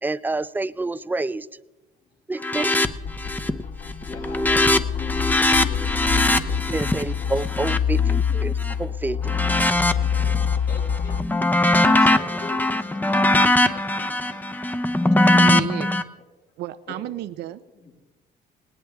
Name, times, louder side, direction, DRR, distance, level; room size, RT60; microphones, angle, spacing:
voice 1, 0.0-1.5 2.3-2.7 6.7-8.5 8.8-9.4 9.6-9.7, right 2 dB, 10° right, 0.5 m, -28 dB
sound 1, 2.4-2.9 3.2-3.6 3.9-8.7 9.2-10.6 10.9-16.0, left 1 dB, 10° left, 0.8 m, -21 dB
sound 2, 2.8-11.2, left 7 dB, 40° left, 1.2 m, -26 dB
voice 2, 4.0-6.7 7.3-7.7 8.6-8.7 10.0-10.3 10.7-12.8 13.1-13.8 14.2-14.5 15.0-15.5 16.9-17.0 17.7-17.9, left 4 dB, 70° left, 6.6 m, -42 dB
voice 3, 15.3-16.0 16.6-17.6, right 13 dB, 75° right, 0.6 m, -32 dB
19.0 x 19.0 x 3.5 m
cardioid pair, 110°, 17 cm